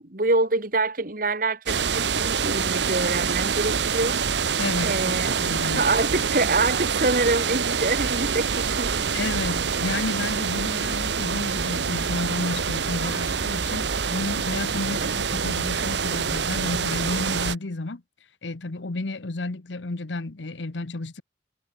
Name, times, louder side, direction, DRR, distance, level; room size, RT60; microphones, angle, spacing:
voice 1, 0.0-4.2 4.8-9.1 14.9-15.1, right 2 dB, 50° right, 2.1 m, -26 dB
sound 1, 1.7-17.5, right 6 dB, 75° right, 1.0 m, -26 dB
voice 2, 4.6-6.2 9.1-18.0 18.4-21.2, left 2 dB, 85° left, 1.1 m, -31 dB
head